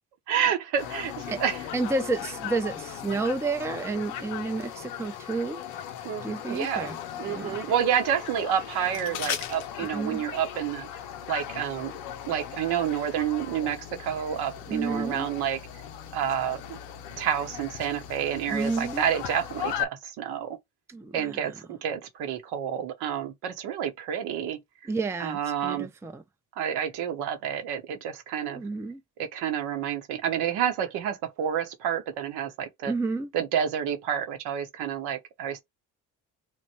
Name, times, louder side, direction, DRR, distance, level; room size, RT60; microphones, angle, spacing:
voice 1, 0.3-1.6 6.0-6.9 7.2-10.9 11.3-11.9 12.3-15.6 16.1-16.8 17.2-20.6 21.1-24.6 25.2-25.9 26.6-28.6 29.2-32.9 33.3-35.6, right 9 dB, 75° right, 0.9 m, -29 dB
sound 1, 0.8-19.8, left 10 dB, 90° left, 0.7 m, -38 dB
voice 2, 1.7-5.6 6.2-7.0 7.2-7.6 9.8-10.2 14.7-15.3 18.5-19.0 20.9-21.6 24.8-26.2 28.5-29.0 32.8-33.3, right 3 dB, 5° right, 0.4 m, -31 dB
3.1 x 2.2 x 4.2 m
supercardioid pair, 70°, 40 cm